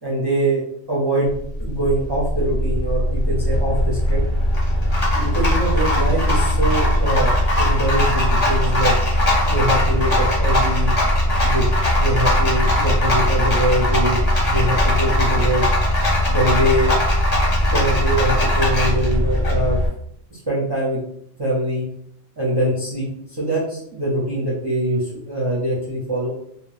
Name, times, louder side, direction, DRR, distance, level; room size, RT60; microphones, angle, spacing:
voice 1, 0.0-4.2 5.1-8.9 9.4-10.9 11.4-14.2 14.4-15.6 16.3-17.0 17.7-19.8 20.3-21.0 21.4-21.8 22.4-26.3, right 1 dB, 25° right, -7 dB, 0.5 m, -23 dB
Rattle, 1.3-19.9, left 1 dB, 40° left, 0.8 m, -19 dB
2.3 x 2.2 x 3.1 m, 0.69 s
omnidirectional pair, 1.2 m